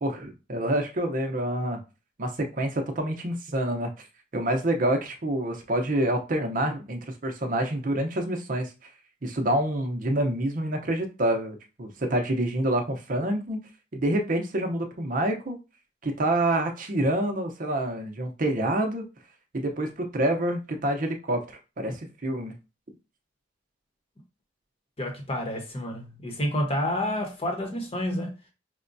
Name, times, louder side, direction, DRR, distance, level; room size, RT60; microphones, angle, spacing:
voice 1, 0.0-1.8 2.2-3.9 4.3-8.7 9.2-13.6 13.9-15.6 16.0-19.0 19.5-21.4 21.8-22.5, right 1 dB, 50° right, 0.7 m, -27 dB
voice 2, 25.0-28.4, left 1 dB, 30° left, 0.9 m, -29 dB
4.9 x 2.2 x 2.6 m
head